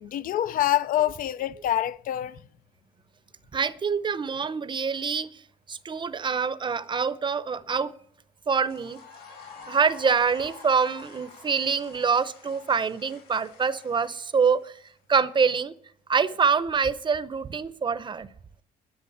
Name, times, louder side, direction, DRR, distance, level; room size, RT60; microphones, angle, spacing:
voice 1, 0.0-2.4, left 12 dB, 55° left, 0.5 m, -26 dB
voice 2, 3.5-5.4 5.7-7.9 8.5-9.0 9.7-14.8 15.1-15.7 16.1-18.3, right 5 dB, 30° right, 0.7 m, -25 dB
sound 1, 8.5-14.9, left 5 dB, 75° left, 4.8 m, -48 dB
11.0 x 6.2 x 8.6 m
cardioid pair, 110°, 17 cm